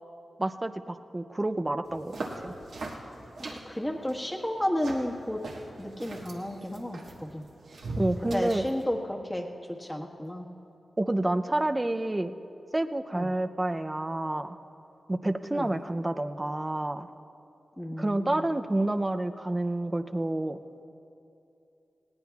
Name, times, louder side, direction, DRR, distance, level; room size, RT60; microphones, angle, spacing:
voice 1, 0.4-2.5 8.0-8.6 11.0-12.3 12.7-14.6 15.1-17.1 18.0-20.6, right 1 dB, 25° right, 9 dB, 0.5 m, -29 dB
sound 1, 1.8-8.8, right 2 dB, 90° right, 1.7 m, -40 dB
voice 2, 3.5-5.4 5.8-7.5 8.2-9.5 9.8-10.5 13.1-13.3 15.5-15.7 17.8-18.4, left 1 dB, 15° left, 1 dB, 1.5 m, -32 dB
20.0 x 18.0 x 2.4 m, 2.8 s
cardioid pair, 55°, 0 cm